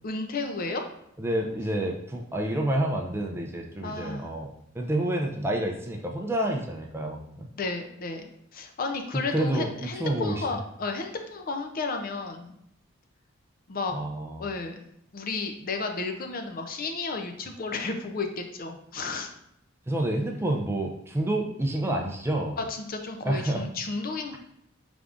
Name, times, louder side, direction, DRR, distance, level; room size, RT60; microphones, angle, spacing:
voice 1, 0.0-0.8 3.8-4.3 7.6-12.6 13.7-13.9 14.4-14.8 15.1-19.3 22.6-24.4, left 3 dB, 45° left, 5 dB, 0.5 m, -33 dB
voice 2, 1.2-7.5 9.1-10.4 13.9-14.5 19.9-22.6 23.2-23.6, right 1 dB, 10° right, 1 dB, 0.4 m, -29 dB
5.1 x 3.4 x 2.5 m, 0.75 s
head